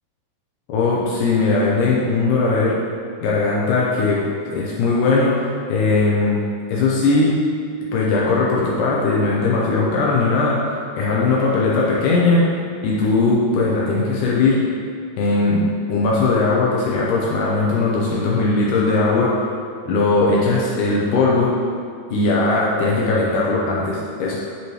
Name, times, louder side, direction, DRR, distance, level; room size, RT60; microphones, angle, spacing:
voice 1, 0.7-2.8 3.2-6.4 6.7-7.4 7.9-10.6 11.0-12.5 12.8-14.6 15.2-19.3 19.8-21.5 22.1-24.4, left 3 dB, 85° left, -4 dB, 1.8 m, -19 dB
8.7 x 5.3 x 3.1 m, 2.3 s
omnidirectional pair, 4.5 m